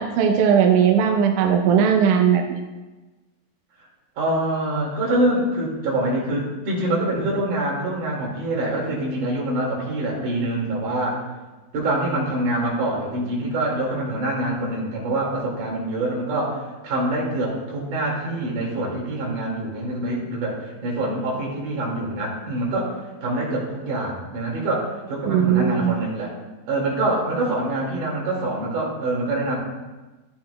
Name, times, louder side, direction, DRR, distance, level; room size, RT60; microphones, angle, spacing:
voice 1, 0.0-2.6 25.3-25.9, right 8 dB, 80° right, 3 dB, 1.8 m, -18 dB
voice 2, 4.2-11.3 11.7-20.6 20.8-26.3 26.7-29.6, right 1 dB, 60° right, -3 dB, 3.5 m, -25 dB
13.0 x 8.7 x 2.3 m, 1.2 s
omnidirectional pair, 4.3 m